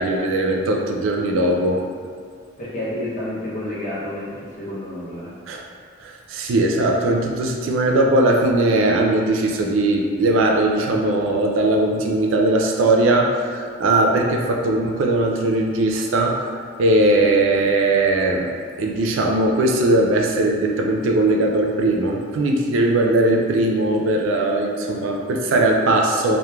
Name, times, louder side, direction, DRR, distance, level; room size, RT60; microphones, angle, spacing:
voice 1, 0.0-1.8 5.5-5.6 6.0-16.4 16.8-18.5 18.8-26.4, right 2 dB, 75° right, 1 dB, 0.3 m, -19 dB
voice 2, 2.6-5.3, left 1 dB, 40° left, -8 dB, 0.7 m, -30 dB
3.0 x 2.0 x 2.2 m, 2.1 s
head